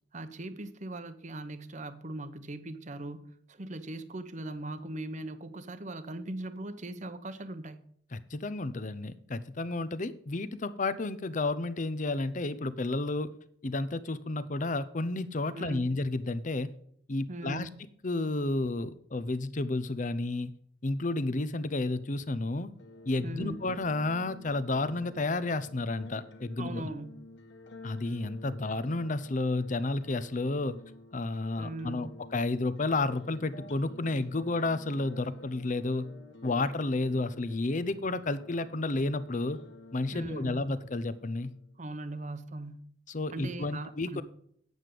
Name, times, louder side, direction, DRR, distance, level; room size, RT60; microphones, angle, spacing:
voice 1, 0.1-7.9 15.5-15.9 17.3-17.8 23.2-23.6 26.6-27.2 31.6-32.1 40.1-40.7 41.8-42.8 43.3-44.2, right 2 dB, 40° right, 0.9 m, -40 dB
voice 2, 8.1-13.3 13.6-16.7 17.1-17.7 18.0-20.5 20.8-22.7 23.1-26.9 27.8-30.8 31.1-36.1 36.4-39.6 39.9-41.5 43.1-44.2, left 2 dB, 40° left, 0.7 m, -31 dB
sound 1, 22.8-41.7, left 2 dB, 80° left, 1.6 m, -51 dB
9.3 x 8.0 x 5.0 m
head